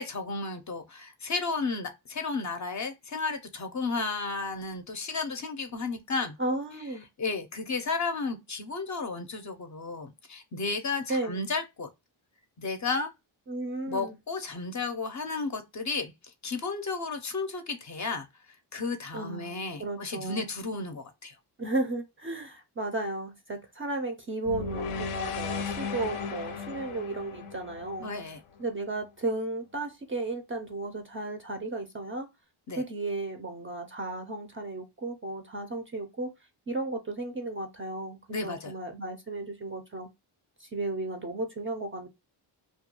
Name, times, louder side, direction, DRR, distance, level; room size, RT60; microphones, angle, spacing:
voice 1, 0.0-6.4 7.2-11.9 12.6-13.1 13.9-16.1 16.4-21.4 28.0-28.4 32.7-32.8 38.3-38.7, left 4 dB, 40° left, 0.5 m, -33 dB
voice 2, 6.4-7.1 11.1-11.4 13.5-14.1 19.1-20.5 21.6-28.1 28.6-32.3 32.8-36.3 36.7-40.1 40.6-42.1, right 2 dB, 30° right, 0.3 m, -34 dB
sound 1, 24.4-28.7, left 5 dB, 90° left, 0.6 m, -35 dB
2.3 x 2.2 x 2.8 m
cardioid pair, 95°, 49 cm